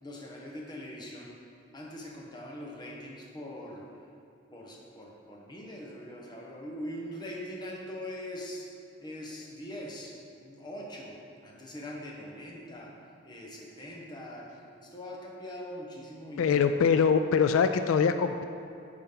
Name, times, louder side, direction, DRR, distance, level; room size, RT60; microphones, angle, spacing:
voice 1, 0.0-1.3 1.7-3.9 4.5-8.7 9.0-12.9 13.2-16.5, left 1 dB, 20° left, -2 dB, 1.0 m, -42 dB
voice 2, 16.4-18.4, left 6 dB, 85° left, 9 dB, 0.3 m, -23 dB
9.5 x 5.6 x 3.8 m, 2.8 s
head